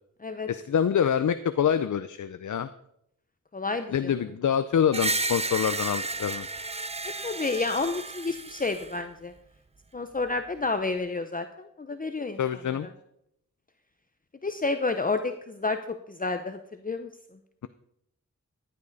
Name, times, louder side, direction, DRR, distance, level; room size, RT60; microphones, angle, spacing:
voice 1, 0.5-2.7 3.9-6.5 12.4-12.9, left 8 dB, 80° left, 12 dB, 0.6 m, -26 dB
voice 2, 3.5-4.1 7.2-9.3 9.9-12.4 14.4-17.1, left 3 dB, 30° left, 8 dB, 0.7 m, -30 dB
Screech, 4.9-8.9, right 2 dB, 20° right, 0.6 m, -32 dB
15.0 x 11.0 x 4.1 m, 0.75 s
wide cardioid pair, 105°, 30 cm